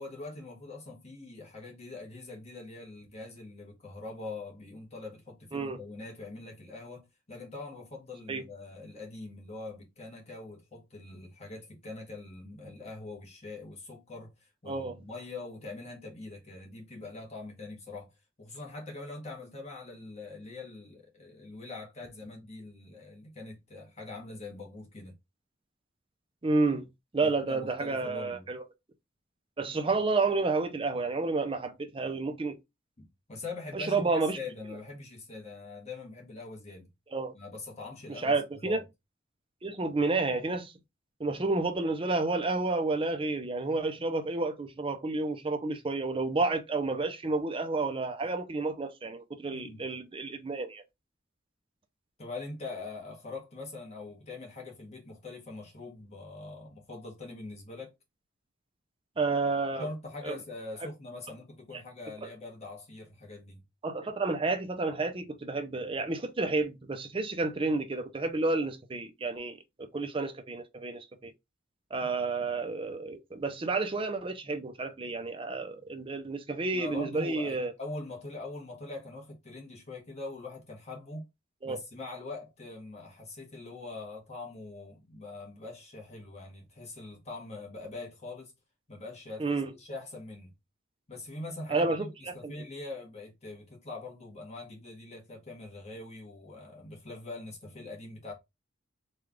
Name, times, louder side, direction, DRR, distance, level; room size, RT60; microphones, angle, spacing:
voice 1, 0.0-18.1 18.4-25.1 27.2-28.5 33.0-36.9 37.3-38.8 49.5-49.9 52.2-57.9 59.7-63.6 76.7-81.3 81.6-88.5 88.9-90.5 91.1-98.3, left 2 dB, 35° left, 1.1 m, -43 dB
voice 2, 14.7-15.0 26.4-26.9 27.1-28.6 29.6-32.6 33.7-34.4 37.1-37.3 38.2-38.8 39.6-40.7 41.2-50.8 59.2-59.9 60.2-60.3 63.8-71.3 71.9-77.7 81.6-81.8 89.4-89.7 91.7-92.5, right 3 dB, 25° right, 0.5 m, -30 dB
3.2 x 2.3 x 3.5 m
head